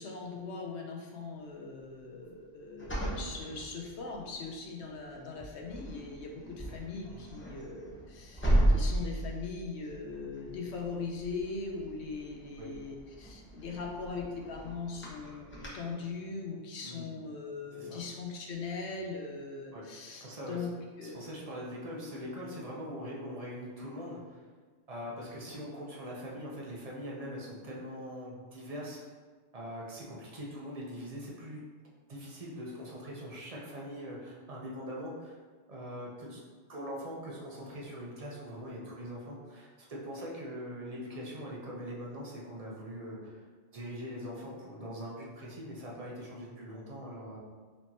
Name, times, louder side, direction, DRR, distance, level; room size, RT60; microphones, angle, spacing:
voice 1, 0.0-20.7 21.0-21.2, left 4 dB, 65° left, 0 dB, 0.9 m, -40 dB
sound 1, 2.8-4.3 4.8-5.1 5.4-15.7, right 1 dB, 10° left, 0.7 m, -35 dB
voice 2, 17.7-18.0 19.7-19.8 20.1-20.6 21.0-24.4 24.9-29.0 29.5-31.6 32.1-35.4 35.7-36.4 36.7-43.4 43.7-47.4, equal, 40° right, -4 dB, 0.6 m, -42 dB
4.4 x 2.9 x 2.8 m, 1.5 s
omnidirectional pair, 1.3 m